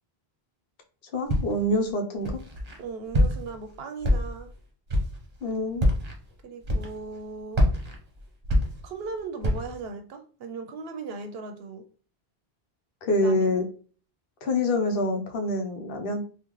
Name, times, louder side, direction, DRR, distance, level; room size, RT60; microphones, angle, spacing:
voice 1, 1.1-2.4 5.4-5.9 13.0-13.6 14.4-16.2, left 1 dB, 65° left, 4 dB, 0.9 m, -26 dB
Walk footsteps, 1.3-1.7 2.2-2.8 3.1-3.6 4.0-4.5 4.9-5.2 5.7-6.2 6.6-7.2 7.5-9.1 9.4-9.8, left 1 dB, 40° right, 0.8 m, -25 dB
voice 2, 2.8-4.5 6.4-7.7 8.8-11.8 13.2-13.6, right 4 dB, 75° right, 6 dB, 0.8 m, -37 dB
3.7 x 2.3 x 3.0 m, 0.41 s
omnidirectional pair, 1.0 m